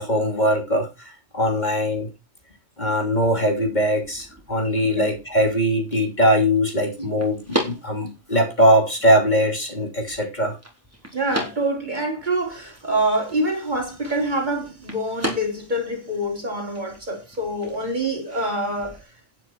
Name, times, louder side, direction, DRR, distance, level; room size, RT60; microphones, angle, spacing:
voice 1, 0.0-2.1 2.8-10.6, equal, 35° left, 3.0 m, -21 dB
sound 1, 3.6-19.0, equal, 10° right, 4.1 m, -37 dB
voice 2, 11.1-19.0, right 1 dB, 40° right, 3.7 m, -26 dB
11.5 x 9.4 x 4.5 m
omnidirectional pair, 1.2 m